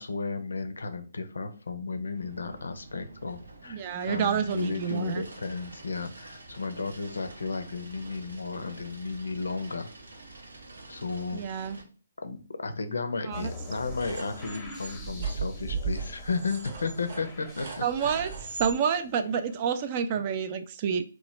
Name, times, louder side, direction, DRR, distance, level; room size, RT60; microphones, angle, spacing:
voice 1, 0.0-10.2 10.9-11.4 12.2-18.3 20.1-20.3, left 4 dB, 80° left, 9 dB, 0.5 m, -34 dB
sound 1, 2.1-11.8, right 2 dB, 85° right, 0.7 m, -48 dB
voice 2, 3.7-5.2 11.3-11.8 13.3-13.5 17.8-21.0, right 7 dB, 35° right, 9 dB, 0.3 m, -29 dB
sound 2, 13.3-19.9, left 2 dB, 10° left, 0.7 m, -45 dB
sound 3, 13.9-18.8, right 5 dB, 50° right, 0.8 m, -37 dB
3.0 x 2.1 x 3.1 m, 0.38 s
figure-of-eight pair, 140°, 0 cm